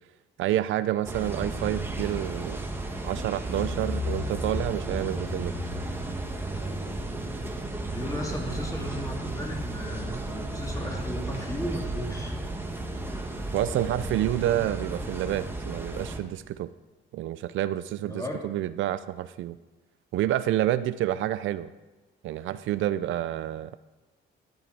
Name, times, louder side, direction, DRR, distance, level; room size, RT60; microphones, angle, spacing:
voice 1, 0.4-2.6 3.0-5.5 13.5-16.7 17.1-19.6 20.1-21.7 22.2-23.8, right 13 dB, 75° right, 14 dB, 0.4 m, -28 dB
sound 1, 1.1-16.2, right 1 dB, 10° right, 1.2 m, -34 dB
sound 2, 4.6-12.0, right 3 dB, 40° right, 2.2 m, -40 dB
voice 2, 7.9-12.3 18.0-18.5, left 1 dB, 15° left, -1 dB, 2.5 m, -35 dB
12.0 x 7.6 x 4.6 m, 1.1 s
cardioid pair, 90°, 20 cm